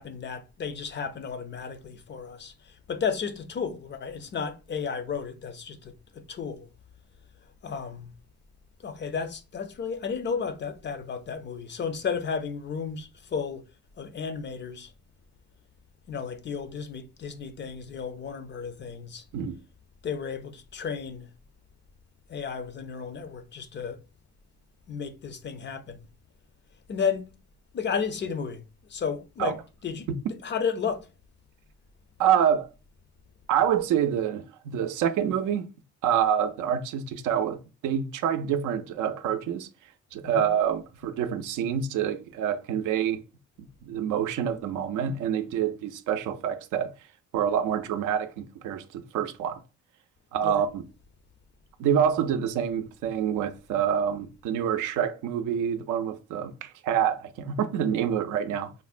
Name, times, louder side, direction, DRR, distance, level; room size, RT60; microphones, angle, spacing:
voice 1, 0.0-6.7 7.6-8.1 8.8-13.7 14.0-14.9 16.1-19.2 20.0-21.3 22.3-24.0 24.9-26.1 26.9-27.3 27.7-28.6 28.9-29.6 29.8-30.1 30.4-31.1 40.3-40.5 50.4-50.6, left 6 dB, 40° left, 0.5 m, -33 dB
voice 2, 32.2-32.7 33.5-35.7 36.0-39.7 40.1-43.2 43.8-46.9 47.3-49.6 50.3-50.8 51.8-58.7, right 9 dB, 85° right, 0.5 m, -27 dB
3.6 x 2.1 x 2.4 m
cardioid pair, 90°, 30 cm